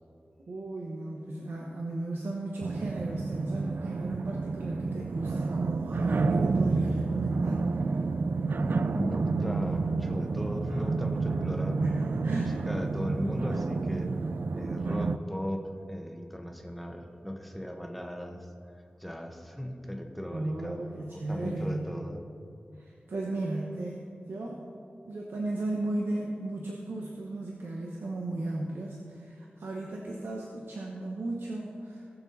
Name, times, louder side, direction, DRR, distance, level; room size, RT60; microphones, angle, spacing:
voice 1, 0.5-7.6 11.8-12.6 20.3-21.9 22.8-24.7 25.0-32.0, right 2 dB, 90° right, -1 dB, 1.1 m, -35 dB
sound 1, 2.6-15.2, right 3 dB, 65° right, 0.4 m, -30 dB
voice 2, 8.6-11.8 12.3-14.1 14.5-18.5 19.0-20.8 21.1-22.2, equal, ahead, 3 dB, 1.3 m, -37 dB
18.5 x 7.0 x 4.1 m, 2.7 s
wide cardioid pair, 70°, 4 cm